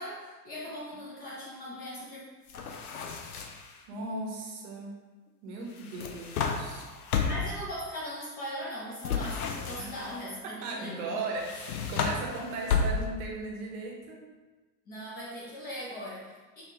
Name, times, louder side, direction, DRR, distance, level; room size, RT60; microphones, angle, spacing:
voice 1, 0.0-2.2 2.5-2.7 7.2-11.2 14.9-16.6, equal, 20° left, -5 dB, 0.5 m, -39 dB
sound 1, 2.5-3.8 5.7-7.6 9.0-10.2 11.4-13.3, left 5 dB, 65° left, 0.6 m, -32 dB
voice 2, 3.9-5.0 5.4-6.9 9.8-9.9 10.4-14.3, right 2 dB, 45° right, -1 dB, 0.9 m, -37 dB
5.4 x 2.4 x 2.9 m, 1.3 s
figure-of-eight pair, 85°, 48 cm